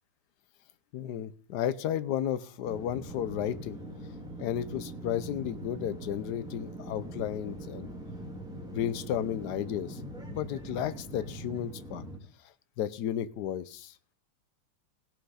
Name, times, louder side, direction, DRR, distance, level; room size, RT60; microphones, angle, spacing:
voice 1, 0.9-3.8 4.4-7.9 8.7-10.0 10.3-12.0 12.8-13.9, left 10 dB, 60° left, 15 dB, 1.2 m, -33 dB
sound 1, 2.6-12.2, right 1 dB, ahead, 2.4 m, -42 dB
17.0 x 6.0 x 5.7 m, 0.42 s
omnidirectional pair, 2.3 m